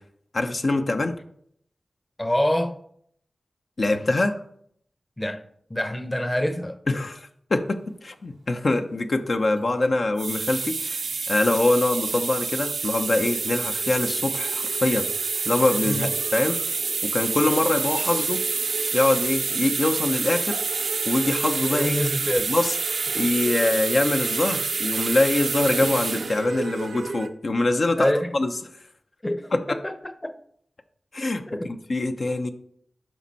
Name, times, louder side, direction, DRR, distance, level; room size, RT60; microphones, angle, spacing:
voice 1, 0.3-1.1 3.8-4.4 6.9-11.0 11.3-15.0 15.5-16.6 17.0-18.4 18.9-20.6 21.1-22.0 22.5-22.7 23.1-28.5 29.5-29.6 31.1-32.5, left 2 dB, 65° left, 0.8 m, -24 dB
voice 2, 2.2-2.8 5.2-5.4 5.7-6.8 15.8-16.1 21.7-22.5 28.0-28.3 29.2-30.3 31.5-31.7, left 1 dB, 20° left, 0.9 m, -26 dB
sound 1, 10.0-27.3, right 4 dB, 85° right, 0.6 m, -27 dB
12.0 x 5.3 x 4.2 m
cardioid pair, 45°, 0 cm